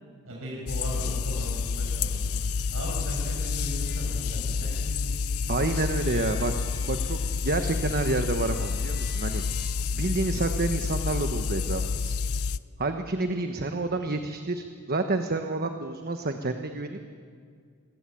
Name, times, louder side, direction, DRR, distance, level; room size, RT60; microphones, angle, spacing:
voice 1, 0.2-5.5, right 1 dB, 70° right, -3 dB, 6.1 m, -38 dB
sound 1, 0.7-12.6, left 5 dB, 80° left, 0.6 m, -29 dB
sound 2, 3.8-4.1 5.7-9.7, left 2 dB, 45° left, 6.7 m, -48 dB
voice 2, 5.5-6.5 6.8-9.4 9.9-12.1 12.8-17.0, right 2 dB, 45° right, 6 dB, 1.3 m, -29 dB
27.5 x 20.5 x 8.7 m, 2.1 s
head